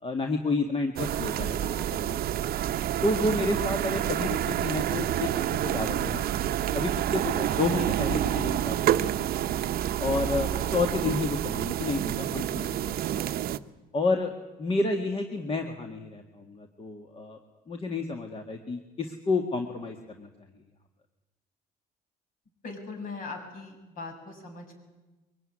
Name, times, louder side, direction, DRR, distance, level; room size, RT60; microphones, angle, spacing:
voice 1, 0.0-1.6 1.9-2.1 3.0-5.3 5.6-9.3 10.0-13.2 13.9-14.3 14.6-17.4 17.7-20.3, left 3 dB, 35° left, 4 dB, 1.9 m, -30 dB
sound 1, 1.0-13.6, right 11 dB, 60° right, 0.8 m, -28 dB
voice 2, 1.3-2.2 22.6-24.8, left 3 dB, 55° left, 3 dB, 7.2 m, -41 dB
23.0 x 18.0 x 9.9 m, 1.1 s
cardioid pair, 110°, 17 cm